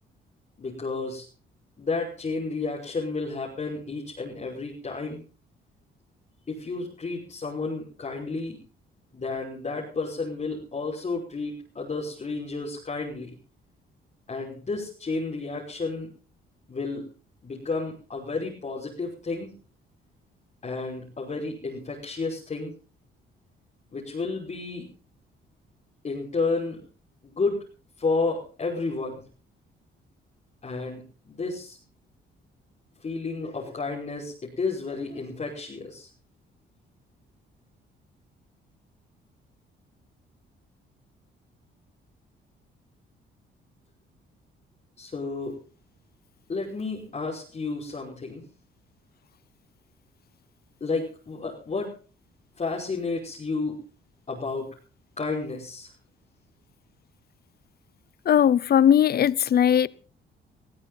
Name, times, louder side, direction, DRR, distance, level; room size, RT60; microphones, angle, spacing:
voice 1, 0.6-1.3 1.8-5.2 6.5-8.6 9.1-13.4 14.3-16.1 16.7-17.1 17.4-19.5 20.6-22.7 23.9-24.9 26.0-26.8 27.2-27.6 28.0-29.2 30.6-31.8 33.0-36.1 45.0-45.6 46.5-48.5 50.8-51.9 52.6-53.8 54.3-54.7 55.2-55.9, left 3 dB, 35° left, 5.7 m, -31 dB
voice 2, 58.3-59.9, left 9 dB, 50° left, 0.7 m, -19 dB
20.0 x 15.0 x 4.1 m
cardioid pair, 90°, 20 cm